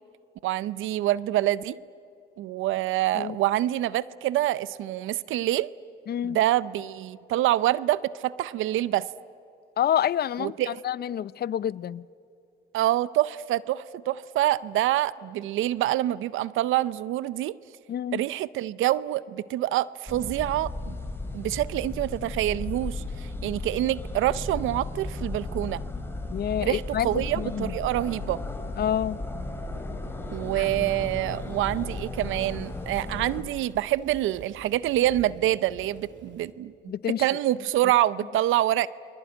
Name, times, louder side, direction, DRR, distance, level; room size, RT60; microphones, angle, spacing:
voice 1, 0.4-1.8 2.4-5.7 6.2-9.1 10.4-10.8 12.7-17.6 18.1-20.9 21.3-25.8 26.6-28.4 30.3-36.7 37.1-38.9, right 14 dB, 85° right, 0.6 m, -26 dB
voice 2, 6.1-6.4 9.8-10.5 10.8-12.0 17.9-18.2 26.3-27.1 27.4-27.7 28.8-29.2 30.6-30.7 36.9-37.2, left 10 dB, 55° left, 0.6 m, -27 dB
sound 1, 20.1-33.4, left 2 dB, 10° left, 3.5 m, -35 dB
Thunder / Rain, 31.3-36.5, right 6 dB, 65° right, 2.4 m, -50 dB
29.0 x 22.0 x 9.4 m
cardioid pair, 90°, 20 cm